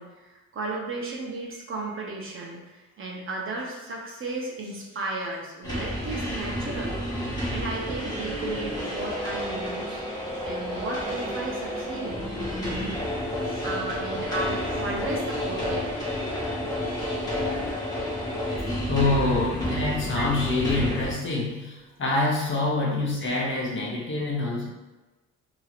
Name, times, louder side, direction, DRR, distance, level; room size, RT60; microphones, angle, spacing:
voice 1, 0.0-7.0 7.5-10.1 10.4-12.2 12.6-16.0 16.9-17.0 20.1-20.2 22.7-23.0, right 3 dB, 45° right, -2 dB, 0.7 m, -35 dB
sound 1, 5.6-21.1, equal, 15° left, 1.0 m, -30 dB
voice 2, 18.7-24.7, left 2 dB, 40° left, -3 dB, 0.9 m, -26 dB
2.9 x 2.8 x 2.4 m, 1.2 s
cardioid pair, 90°, 30 cm